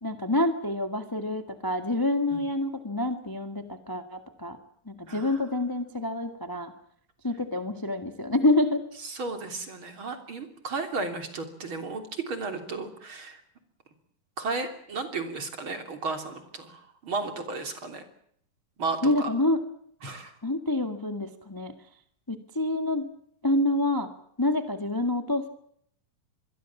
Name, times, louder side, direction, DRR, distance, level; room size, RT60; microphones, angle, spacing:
voice 1, 0.0-4.6 4.8-6.7 7.2-8.8 19.0-19.6 20.4-21.7 22.3-23.0 23.4-24.1 24.4-25.5, left 1 dB, 15° left, 8 dB, 0.7 m, -27 dB
voice 2, 5.1-5.4 9.0-13.4 14.4-18.0 18.8-19.3 20.0-20.3, right 3 dB, 40° right, 7 dB, 3.8 m, -34 dB
25.5 x 22.0 x 7.2 m, 0.67 s
omnidirectional pair, 3.9 m